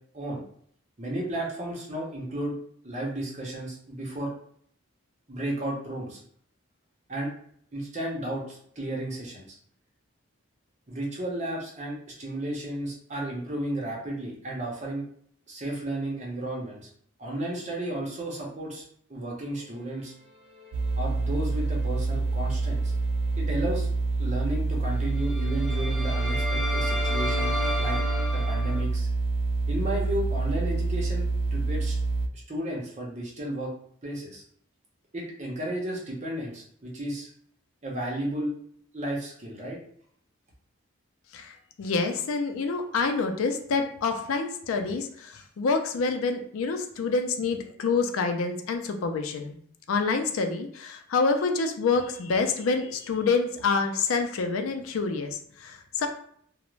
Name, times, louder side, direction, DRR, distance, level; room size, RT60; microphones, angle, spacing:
voice 1, 1.0-2.5 2.8-4.3 5.3-6.2 7.1-7.3 7.7-9.5 10.9-15.0 15.5-16.9 17.2-18.8 19.1-20.1 20.9-22.9 23.4-23.9 24.2-27.5 27.8-28.0 28.3-29.1 29.7-32.0 32.3-33.7 34.0-34.4 35.1-37.3 37.8-38.5 38.9-39.8, right 1 dB, 35° right, -2 dB, 0.7 m, -33 dB
sound 1, 20.5-22.3 22.6-22.9 25.1-28.8, left 2 dB, 5° left, 0.7 m, -34 dB
sound 2, 20.7-32.3, right 3 dB, 85° right, 0.3 m, -27 dB
voice 2, 41.3-49.6 49.9-56.1, left 4 dB, 75° left, 6 dB, 0.4 m, -27 dB
2.4 x 2.1 x 3.0 m, 0.63 s
head